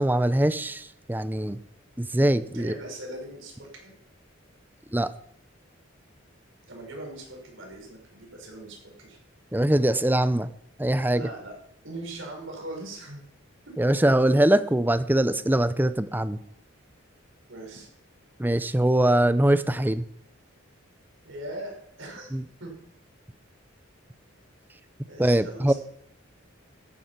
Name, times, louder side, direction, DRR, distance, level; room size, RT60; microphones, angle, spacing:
voice 1, 0.0-1.6 2.0-2.7 4.9-5.1 9.5-10.5 10.8-11.2 13.8-16.4 18.4-20.0 22.3-22.4 25.2-25.7, right 1 dB, 10° right, 14 dB, 0.6 m, -22 dB
voice 2, 2.5-3.9 6.7-9.2 11.1-11.5 11.8-13.2 17.5-17.9 21.2-22.3 22.6-22.7 25.1-25.8, right 1 dB, 70° right, 0 dB, 5.8 m, -40 dB
14.5 x 9.8 x 5.8 m, 0.70 s
head